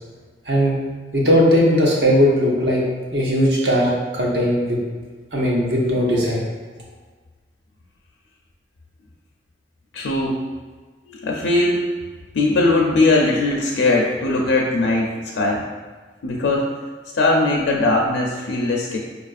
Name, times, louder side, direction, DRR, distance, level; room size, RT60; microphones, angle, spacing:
voice 1, 0.5-0.8 1.1-2.8 3.1-4.8 5.3-6.4, equal, 65° right, -3 dB, 0.8 m, -18 dB
voice 2, 9.9-10.4 11.1-11.9 12.3-15.7 16.2-16.7 17.1-19.0, left 2 dB, 80° left, -1 dB, 0.4 m, -19 dB
4.7 x 2.4 x 2.4 m, 1.4 s
head